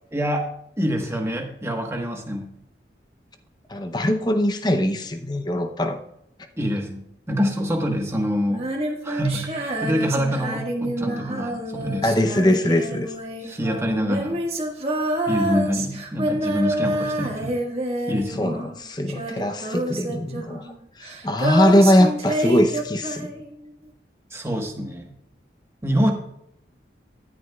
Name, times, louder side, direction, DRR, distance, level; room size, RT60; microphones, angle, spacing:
voice 1, 0.1-0.5 0.8-2.5 6.6-8.7 9.0-12.0 13.4-14.4 15.3-17.6 18.1-18.5 24.3-25.1 25.8-26.1, equal, 15° right, 1.2 m, -25 dB
voice 2, 3.7-6.0 12.0-13.1 18.4-20.6 21.0-23.3, left 1 dB, 25° left, 0.6 m, -21 dB
Female singing, 8.5-18.8 19.1-23.5, right 1 dB, 35° right, 1.6 m, -28 dB
14.0 x 9.5 x 2.3 m
head